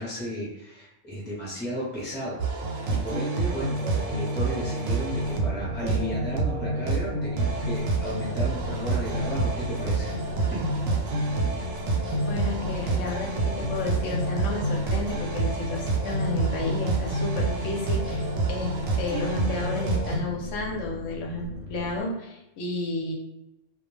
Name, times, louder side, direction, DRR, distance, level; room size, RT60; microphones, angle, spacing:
voice 1, 0.0-2.4 2.9-10.7, equal, 10° left, -6 dB, 0.6 m, -34 dB
sound 1, 2.4-20.2, right 3 dB, 90° right, 1.0 m, -28 dB
sound 2, 5.1-22.0, left 3 dB, 50° left, 0.8 m, -39 dB
voice 2, 12.3-18.2 18.5-18.7 19.0-23.1, left 3 dB, 75° left, -2 dB, 0.9 m, -32 dB
2.2 x 2.2 x 3.1 m, 0.90 s
omnidirectional pair, 1.3 m